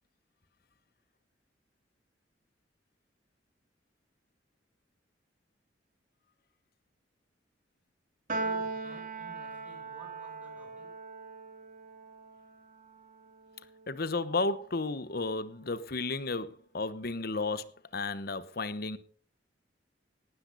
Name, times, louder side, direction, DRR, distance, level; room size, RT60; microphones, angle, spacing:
Piano, 8.3-14.8, right 3 dB, 45° right, 2.7 m, -40 dB
voice 1, 8.4-11.0, right 1 dB, 10° right, 7.6 m, -54 dB
voice 2, 13.9-19.0, left 3 dB, 55° left, 1.1 m, -33 dB
18.5 x 12.5 x 4.0 m
head